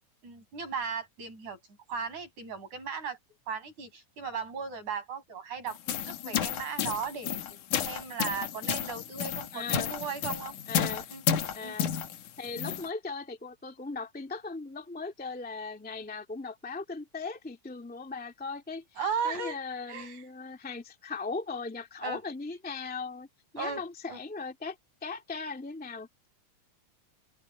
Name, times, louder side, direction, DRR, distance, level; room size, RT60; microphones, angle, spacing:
voice 1, 0.2-1.6 1.9-3.2 3.5-7.6 7.9-10.6 11.1-11.2 11.6-11.7 19.0-19.6 19.9-20.2 22.0-22.2 23.6-23.8 24.1-24.2, right 6 dB, 70° right, 8.0 m, -36 dB
sound 1, 5.7-12.9, left 9 dB, 90° left, 2.9 m, -32 dB
voice 2, 9.5-9.9 10.7-11.1 11.5-11.9 12.4-18.8 19.2-23.3 23.5-24.7 25.0-26.3, left 4 dB, 5° left, 1.5 m, -38 dB
open air
omnidirectional pair, 3.5 m